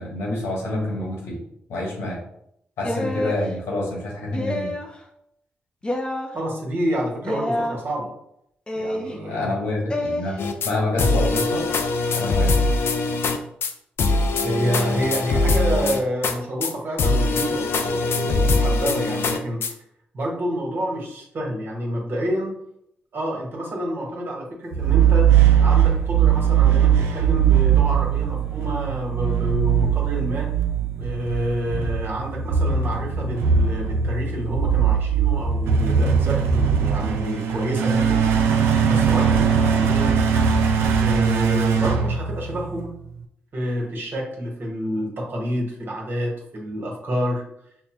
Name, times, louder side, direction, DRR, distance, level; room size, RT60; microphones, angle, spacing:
voice 1, 0.0-1.4 1.7-2.2 2.8-4.7 9.2-10.4 10.6-11.7 12.1-12.6, left 2 dB, 85° left, -3 dB, 1.4 m, -27 dB
sound 1, 2.8-3.4 4.3-4.9 5.8-6.3 7.2-7.8 8.7-9.1 9.9-10.2, left 1 dB, 20° left, 0.7 m, -27 dB
voice 2, 6.3-8.1 8.7-9.5 14.4-19.6 20.1-22.5 23.1-25.3 25.6-30.5 30.8-38.2 38.8-40.2 41.0-42.9 43.5-47.4, equal, 55° right, -1 dB, 1.3 m, -28 dB
sound 2, 10.4-10.7 11.0-13.4 13.6-13.7 14.0-16.3 16.6-16.7 17.0-19.7, left 3 dB, 65° left, 0.4 m, -22 dB
sound 3, 24.7-42.9, right 7 dB, 90° right, 0.4 m, -20 dB
5.3 x 2.1 x 3.0 m, 0.75 s
supercardioid pair, 60°, 4 cm